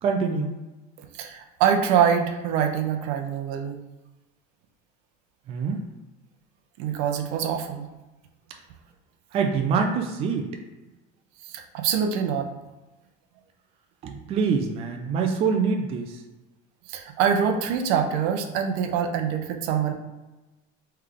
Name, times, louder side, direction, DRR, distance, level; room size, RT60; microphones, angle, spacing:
voice 1, 0.0-0.6 5.5-5.8 9.3-10.5 14.0-16.2, right 5 dB, 30° right, 3 dB, 0.4 m, -25 dB
voice 2, 1.1-3.8 6.8-7.9 11.4-12.5 16.9-19.9, right 7 dB, 75° right, 4 dB, 0.6 m, -24 dB
3.4 x 3.3 x 3.7 m, 1.1 s
cardioid pair, 160°, 20 cm